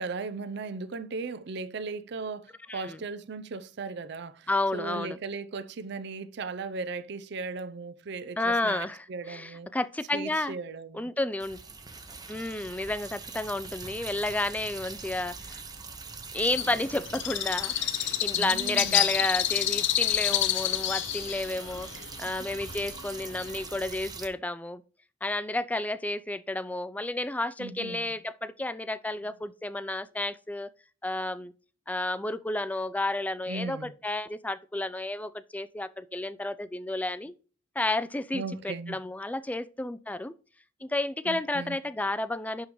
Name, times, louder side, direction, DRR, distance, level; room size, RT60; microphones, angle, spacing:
voice 1, 0.0-9.7 10.1-11.1 18.3-19.2 20.0-20.4 21.3-21.4 22.3-22.4 27.6-28.1 33.5-33.9 38.3-39.0 41.3-41.8, right 4 dB, 65° right, 0.5 m, -37 dB
voice 2, 2.7-3.0 4.5-5.2 8.4-10.6 10.9-11.6 12.3-15.4 16.3-21.9 22.2-24.8 25.2-30.7 31.0-31.5 31.9-37.3 37.8-40.3 40.8-42.7, left 2 dB, 10° left, 0.3 m, -31 dB
sound 1, 11.4-24.3, right 4 dB, 20° right, 0.9 m, -43 dB
Bird, 16.5-23.8, left 13 dB, 70° left, 0.5 m, -29 dB
11.0 x 3.7 x 3.0 m
head